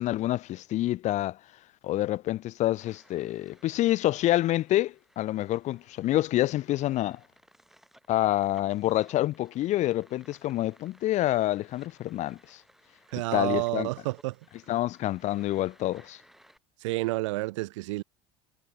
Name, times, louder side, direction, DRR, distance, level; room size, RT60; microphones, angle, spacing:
voice 1, 0.0-1.4 1.8-7.2 8.1-12.6 13.3-13.9 14.7-16.2, left 15 dB, 50° left, 0.8 m, -27 dB
sound 1, 2.8-16.6, equal, ahead, 7.9 m, -61 dB
voice 2, 13.1-14.4 16.8-18.0, right 21 dB, 80° right, 2.0 m, -30 dB
supercardioid pair, 95°, 15 cm